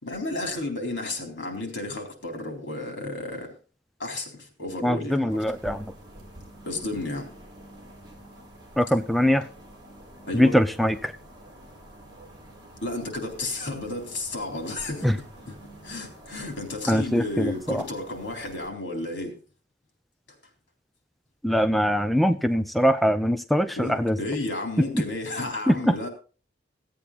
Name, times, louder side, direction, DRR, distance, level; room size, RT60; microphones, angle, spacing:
voice 1, 0.0-3.5 4.0-5.3 6.6-7.3 10.3-10.6 12.8-15.5 15.8-19.3 23.8-26.1, left 2 dB, 75° left, 3 dB, 3.9 m, -32 dB
voice 2, 4.8-5.9 8.8-9.5 10.3-11.1 15.0-15.2 16.9-17.8 21.4-24.2 25.7-26.1, equal, ahead, 9 dB, 0.5 m, -22 dB
sound 1, 5.3-18.7, right 1 dB, 25° right, 4.4 m, -48 dB
16.0 x 8.5 x 4.1 m, 0.36 s
head